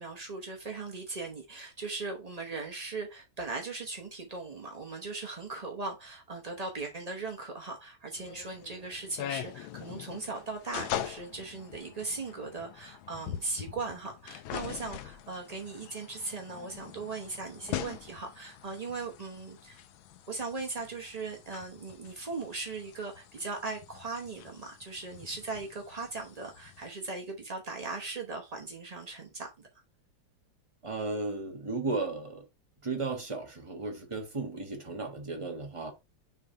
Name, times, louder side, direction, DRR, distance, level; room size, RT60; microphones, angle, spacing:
voice 1, 0.0-19.8 20.3-29.7, right 3 dB, 45° right, 0.5 m, -39 dB
sound 1, 8.2-26.9, left 11 dB, 75° left, 1.4 m, -43 dB
voice 2, 30.8-32.4 32.8-35.9, right 3 dB, 20° right, 0.9 m, -35 dB
6.4 x 3.4 x 4.3 m
omnidirectional pair, 2.4 m